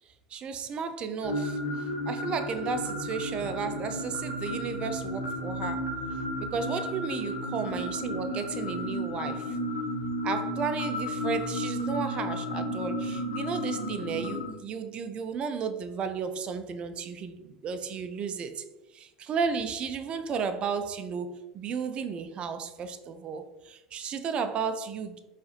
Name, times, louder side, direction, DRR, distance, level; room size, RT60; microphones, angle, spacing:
voice 1, 0.3-5.9 6.5-9.6 10.2-18.6 18.9-25.2, right 6 dB, 40° right, 9 dB, 0.4 m, -33 dB
sound 1, 1.2-14.5, equal, 75° left, 0.9 m, -33 dB
4.7 x 2.5 x 2.7 m, 1.0 s
hypercardioid pair, 80°, 3 cm